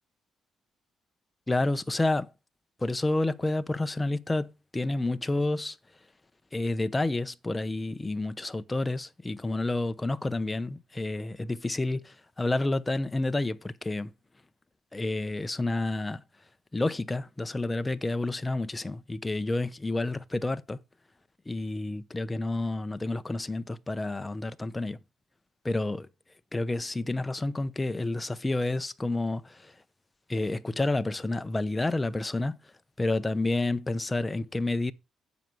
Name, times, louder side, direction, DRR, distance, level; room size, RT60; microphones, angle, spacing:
voice 1, 1.5-2.3 2.8-5.8 6.5-14.1 14.9-16.2 16.7-20.8 21.5-25.0 25.6-26.1 26.5-29.7 30.3-32.6 33.0-34.9, left 2 dB, 15° left, 0.8 m, -29 dB
10.5 x 7.5 x 4.7 m
cardioid pair, 90°, 0 cm